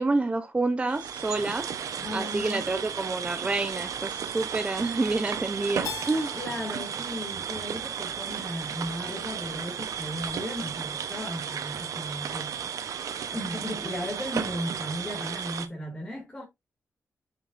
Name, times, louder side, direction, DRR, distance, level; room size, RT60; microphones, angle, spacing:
voice 1, 0.0-6.3, right 3 dB, 20° right, 0.6 m, -28 dB
sound 1, 0.9-15.7, right 7 dB, 90° right, 0.8 m, -34 dB
voice 2, 2.0-2.6 6.3-12.7 13.3-16.4, left 1 dB, 15° left, 2.0 m, -36 dB
Keyboard (musical), 5.8-8.7, left 5 dB, 75° left, 1.3 m, -43 dB
6.9 x 5.4 x 2.5 m
wide cardioid pair, 155°, 6 cm